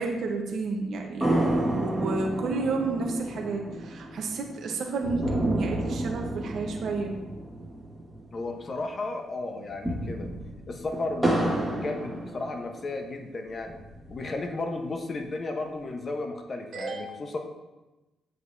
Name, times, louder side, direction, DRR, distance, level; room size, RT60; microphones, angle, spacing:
voice 1, 0.0-7.1 16.7-17.2, right 3 dB, 60° right, 2 dB, 0.9 m, -31 dB
sound 1, 1.2-8.8 9.1-9.2 9.6-13.0 13.5-14.5, right 1 dB, 5° right, 1.6 m, -31 dB
voice 2, 8.3-10.3 10.7-13.8 14.1-17.4, left 2 dB, 40° left, 4 dB, 0.9 m, -34 dB
7.9 x 5.3 x 2.7 m, 1.1 s
cardioid pair, 90°, 0 cm